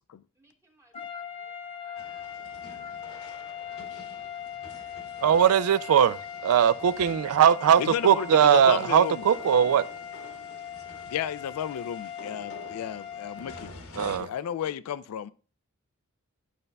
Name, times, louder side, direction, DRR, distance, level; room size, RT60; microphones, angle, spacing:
voice 1, 0.4-1.6 1.8-2.4 2.6-4.4 4.7-6.1, right 1 dB, 10° right, 1.0 m, -61 dB
sound 1, 0.9-13.8, left 8 dB, 25° left, 0.8 m, -40 dB
sound 2, 2.0-14.2, left 2 dB, 65° left, 1.1 m, -47 dB
voice 2, 5.2-6.2 6.4-9.8 14.0-14.3, right 8 dB, 75° right, 0.3 m, -20 dB
voice 3, 7.8-9.3 11.1-13.7 14.0-15.3, left 9 dB, 85° left, 0.3 m, -33 dB
11.0 x 5.3 x 2.2 m
head